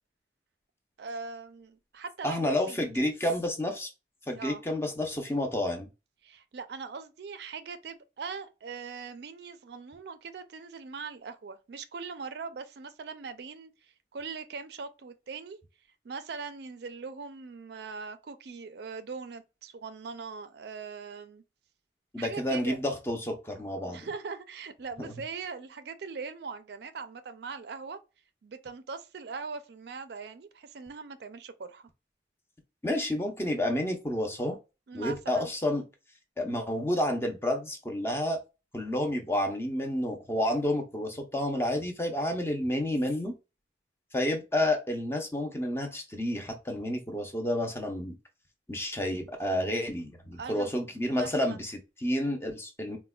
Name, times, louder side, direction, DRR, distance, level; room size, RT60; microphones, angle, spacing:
voice 1, 1.0-2.8 4.3-4.6 6.2-15.6 16.0-21.4 22.2-22.8 23.9-28.0 28.4-31.8 34.9-35.5 50.3-50.7 51.1-51.7, right 5 dB, 65° right, 0.4 m, -41 dB
voice 2, 2.2-3.9 4.3-5.9 22.1-24.1 25.0-25.1 32.8-34.6 34.9-35.8 36.4-38.4 38.7-43.4 44.1-48.2 48.7-53.0, left 1 dB, 15° left, 0.5 m, -30 dB
4.1 x 2.1 x 2.2 m
head